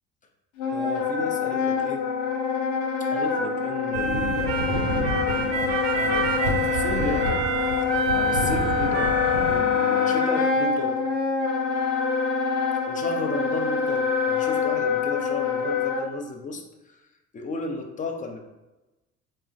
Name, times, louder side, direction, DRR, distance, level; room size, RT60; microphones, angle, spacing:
Wind instrument woodwind instrument, 0.6-16.1, left 5 dB, 70° left, 0.6 m, -25 dB
voice 1, 0.7-2.1 3.0-7.5 8.1-9.2 9.5-11.0 12.9-17.0 17.3-18.4, left 3 dB, 20° left, 3 dB, 0.4 m, -34 dB
sound 1, 3.9-9.6, right 4 dB, 70° right, 0.5 m, -27 dB
3.7 x 2.1 x 2.6 m, 1.0 s
figure-of-eight pair, 55°, 37 cm